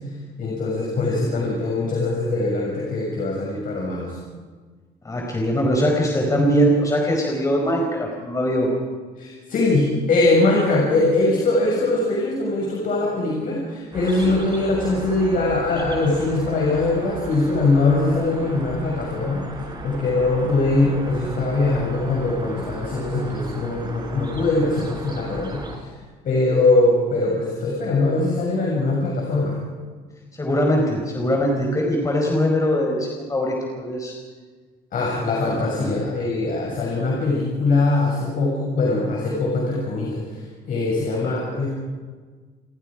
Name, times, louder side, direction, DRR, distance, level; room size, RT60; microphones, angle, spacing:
voice 1, 0.4-4.2 9.1-25.9 26.2-29.6 34.9-41.7, left 2 dB, 55° left, -2 dB, 6.7 m, -22 dB
voice 2, 5.0-8.7 30.3-34.1 35.6-35.9, equal, 20° left, 0 dB, 4.8 m, -21 dB
sound 1, 13.9-25.8, right 2 dB, 25° right, 4.9 m, -36 dB
29.0 x 20.5 x 5.1 m, 1.5 s
cardioid pair, 110°, 17 cm